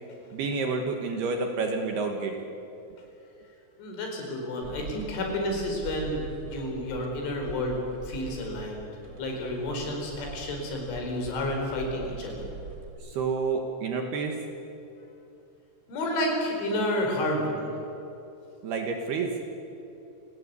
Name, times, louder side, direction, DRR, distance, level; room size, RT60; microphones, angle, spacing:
voice 1, 0.3-2.4 13.0-14.4 18.6-19.3, right 4 dB, 65° right, 4 dB, 2.9 m, -29 dB
voice 2, 3.8-8.9 9.2-12.5 15.9-17.6, left 1 dB, 65° left, 1 dB, 6.7 m, -30 dB
sound 1, 4.6-12.9, right 4 dB, 45° right, 1.4 m, -43 dB
28.5 x 18.5 x 8.3 m, 2.9 s
omnidirectional pair, 5.9 m